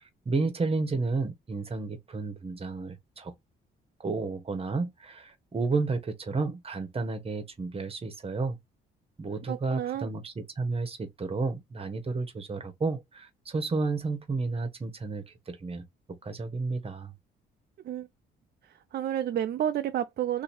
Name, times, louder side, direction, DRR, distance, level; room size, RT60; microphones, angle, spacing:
voice 1, 0.0-3.3 4.0-8.6 9.2-17.1, right 3 dB, 30° right, 1.1 m, -32 dB
voice 2, 9.5-10.1 17.8-18.1 18.6-20.4, right 11 dB, 55° right, 0.4 m, -30 dB
2.8 x 2.7 x 4.0 m
cardioid pair, 90°, 20 cm